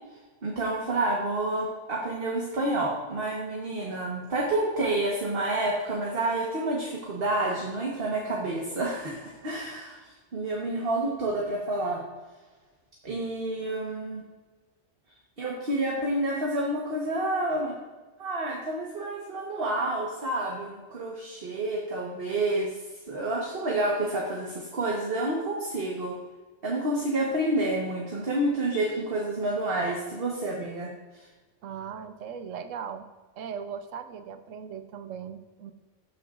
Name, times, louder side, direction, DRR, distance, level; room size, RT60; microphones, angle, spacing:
voice 1, 0.4-10.0 10.3-12.0 13.0-14.2 15.4-17.7 18.2-22.8 23.1-26.2 26.6-30.9, right 2 dB, 50° right, -2 dB, 1.4 m, -29 dB
voice 2, 31.6-33.1 33.4-35.7, right 7 dB, 85° right, 10 dB, 1.0 m, -38 dB
15.0 x 6.8 x 2.5 m, 1.3 s
omnidirectional pair, 1.3 m